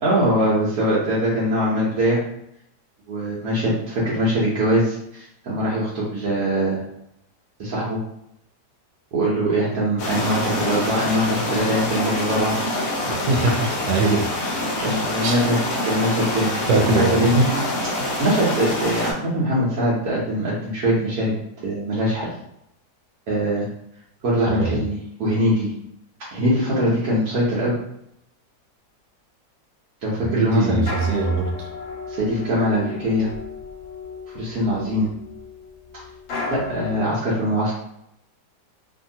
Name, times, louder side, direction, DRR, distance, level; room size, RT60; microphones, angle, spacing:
voice 1, 0.0-2.2 3.1-6.8 7.6-8.0 9.1-12.5 14.8-16.5 16.8-17.4 18.1-21.3 21.6-22.3 23.3-23.6 24.2-25.7 26.3-27.8 30.0-30.8 32.1-33.3 34.3-35.1 36.5-37.7, equal, 65° right, -7 dB, 1.2 m, -22 dB
sound 1, 10.0-19.1, left 1 dB, 80° left, 0.6 m, -26 dB
voice 2, 13.1-14.3 15.2-15.3 16.7-17.5 24.5-24.8 30.2-31.7, right 3 dB, 90° right, 2 dB, 1.3 m, -22 dB
sound 2, 30.6-37.0, left 3 dB, 65° left, 1.0 m, -35 dB
2.8 x 2.7 x 2.6 m, 0.76 s
omnidirectional pair, 1.9 m